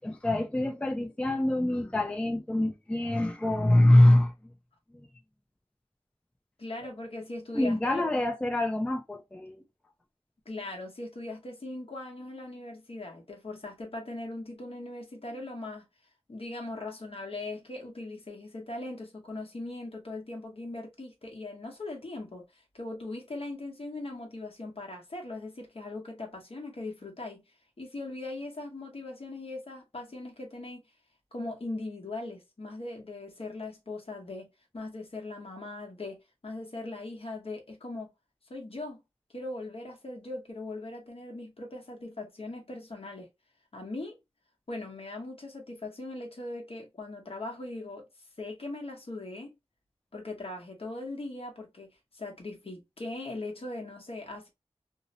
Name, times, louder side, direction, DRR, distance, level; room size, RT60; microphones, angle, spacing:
voice 1, 0.0-4.5 4.9-5.1 7.5-9.6, left 1 dB, 10° left, 0.4 m, -25 dB
voice 2, 6.6-8.1 10.5-15.9 16.3-27.4 27.8-30.8 31.3-38.1 38.5-39.0 39.3-43.3 43.7-44.2 44.7-48.1 48.4-49.5 50.1-54.5, left 2 dB, 60° left, 0.9 m, -40 dB
2.6 x 2.0 x 2.6 m
wide cardioid pair, 70°, 11 cm